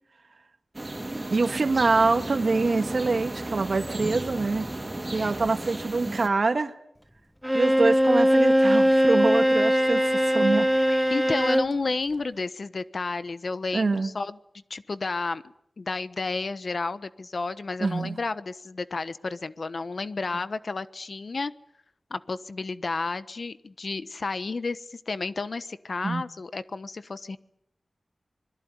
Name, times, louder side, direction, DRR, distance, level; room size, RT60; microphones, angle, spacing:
sound 1, 0.7-6.3, right 1 dB, 25° right, 3.8 m, -34 dB
voice 1, 1.3-4.7 5.1-6.8 7.5-10.7 13.7-14.1 17.8-18.2 26.0-26.2, right 3 dB, 65° right, 9 dB, 1.9 m, -25 dB
Bowed string instrument, 7.4-11.8, equal, ahead, 1.1 m, -21 dB
voice 2, 10.9-14.4 14.7-15.4 15.8-21.5 22.1-27.4, left 3 dB, 65° left, 13 dB, 1.2 m, -31 dB
26.5 x 21.5 x 9.6 m, 0.75 s
wide cardioid pair, 75°, 0 cm